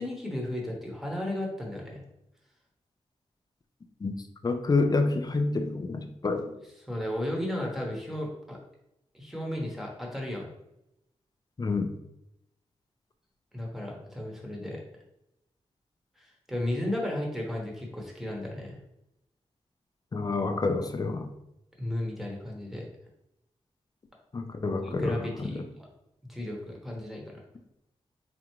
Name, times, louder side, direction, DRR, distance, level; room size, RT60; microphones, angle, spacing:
voice 1, 0.0-2.0 6.8-8.6 9.1-10.5 13.5-14.8 16.2-18.8 21.8-22.9 24.8-25.9 26.3-27.4, left 1 dB, 5° right, -1 dB, 1.0 m, -34 dB
voice 2, 4.4-6.5 11.6-11.9 20.1-21.3 24.3-25.2, left 3 dB, 35° left, 6 dB, 0.4 m, -28 dB
3.7 x 3.4 x 3.0 m, 0.85 s
wide cardioid pair, 95°, 11 cm